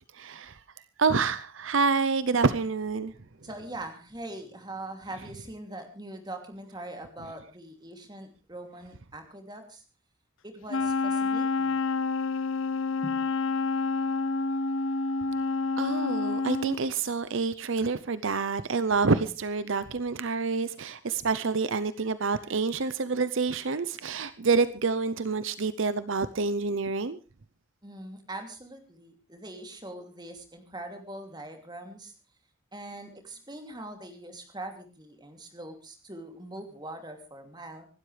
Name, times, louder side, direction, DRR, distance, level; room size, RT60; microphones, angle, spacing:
voice 1, 0.1-0.6 1.0-3.1 15.8-27.2, right 4 dB, 65° right, 14 dB, 0.7 m, -27 dB
voice 2, 3.4-9.8 10.4-11.8 13.0-13.2 27.8-32.1 32.7-37.9, right 1 dB, 20° right, 5 dB, 2.8 m, -42 dB
Wind instrument woodwind instrument, 10.7-16.8, left 4 dB, 65° left, 0.8 m, -28 dB
26.0 x 12.5 x 3.3 m, 0.33 s
head